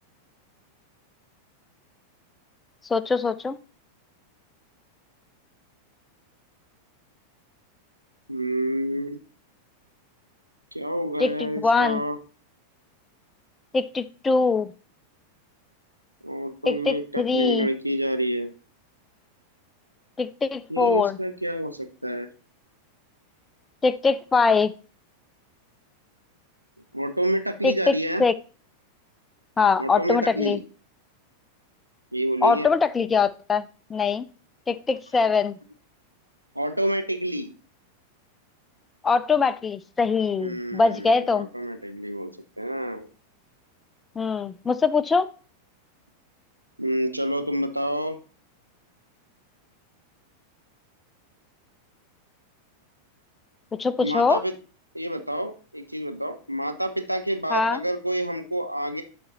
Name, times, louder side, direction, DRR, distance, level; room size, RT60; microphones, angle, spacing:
voice 1, 2.9-3.6 11.2-12.0 13.7-14.7 16.7-17.7 20.2-21.2 23.8-24.7 27.6-27.9 28.2-28.3 29.6-30.6 32.4-33.6 33.9-34.3 34.7-35.6 39.0-41.5 44.2-45.3 53.8-54.4 57.5-57.8, left 4 dB, 15° left, 14 dB, 0.5 m, -22 dB
voice 2, 8.3-9.2 10.7-12.2 16.2-18.5 20.7-22.3 26.9-28.3 29.8-30.6 32.1-32.7 36.5-37.5 40.4-42.3 42.6-43.1 46.8-48.2 54.0-54.5 54.9-59.0, right 1 dB, 90° right, 7 dB, 1.0 m, -28 dB
11.5 x 4.3 x 4.0 m, 0.37 s
figure-of-eight pair, 90°, 0 cm